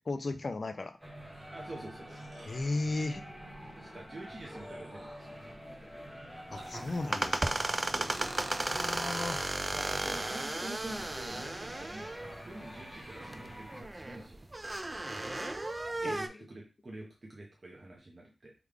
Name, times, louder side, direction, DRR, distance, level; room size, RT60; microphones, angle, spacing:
voice 1, 0.1-1.0 2.5-3.2 6.5-7.6 8.7-9.4 16.0-16.2, left 2 dB, 50° left, 9 dB, 0.4 m, -35 dB
South Kensington - Busker in station, 1.0-13.8, equal, 5° right, 0.9 m, -47 dB
voice 2, 1.5-2.2 3.8-5.5 7.9-8.5 9.7-12.1 12.4-14.4 15.7-18.5, right 2 dB, 40° right, -2 dB, 0.8 m, -47 dB
sound 1, 2.0-15.0, right 2 dB, 65° right, 1.2 m, -56 dB
sound 2, 6.6-16.3, right 2 dB, 25° right, 0.3 m, -35 dB
3.6 x 2.4 x 3.3 m, 0.31 s
wide cardioid pair, 75°, 0 cm